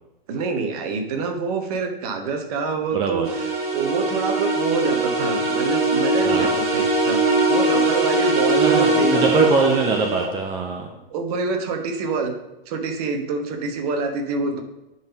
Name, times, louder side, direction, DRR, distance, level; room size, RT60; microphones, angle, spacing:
voice 1, 0.3-9.5 11.1-12.3 12.7-14.6, right 4 dB, 40° right, 5 dB, 1.2 m, -26 dB
voice 2, 2.9-3.3 6.2-6.6 8.6-10.9, right 4 dB, 15° right, 2 dB, 0.6 m, -22 dB
sound 1, 3.2-10.2, right 2 dB, 55° right, 2.5 m, -21 dB
10.0 x 4.2 x 5.0 m, 0.93 s
figure-of-eight pair, 105°, 31 cm